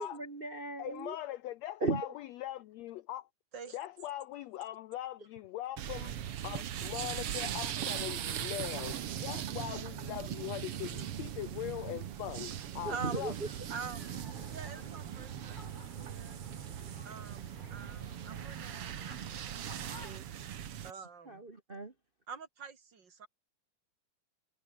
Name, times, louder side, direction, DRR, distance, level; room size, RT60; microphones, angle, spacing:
voice 1, 0.0-1.2 1.8-2.1 12.8-13.3 21.2-21.9, right 3 dB, 90° right, 0.4 m, -36 dB
voice 2, 0.8-3.2 3.7-6.1 6.4-13.3, left 14 dB, 80° left, 1.5 m, -41 dB
sound 1, 5.8-20.9, right 10 dB, 55° right, 1.8 m, -40 dB
sound 2, 12.8-20.2, left 3 dB, 30° left, 0.9 m, -55 dB
voice 3, 12.9-13.2 13.7-14.1 14.5-16.4 17.0-19.2 19.6-20.5 20.8-21.4 22.3-23.3, right 5 dB, 35° right, 2.7 m, -46 dB
omnidirectional pair, 3.9 m